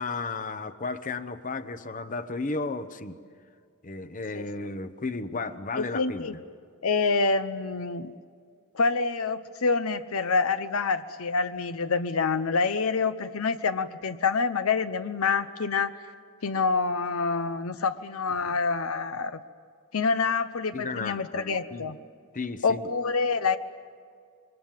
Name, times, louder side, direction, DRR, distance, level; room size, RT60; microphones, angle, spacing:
voice 1, 0.0-3.2 3.8-6.3 18.5-18.6 20.7-21.9 22.3-22.9, left 3 dB, 40° left, 11 dB, 0.9 m, -34 dB
voice 2, 5.8-6.3 6.8-8.1 8.7-16.0 16.4-19.4 19.9-22.0 22.6-23.6, left 4 dB, 75° left, 11 dB, 0.8 m, -27 dB
26.5 x 23.5 x 7.4 m, 2.2 s
head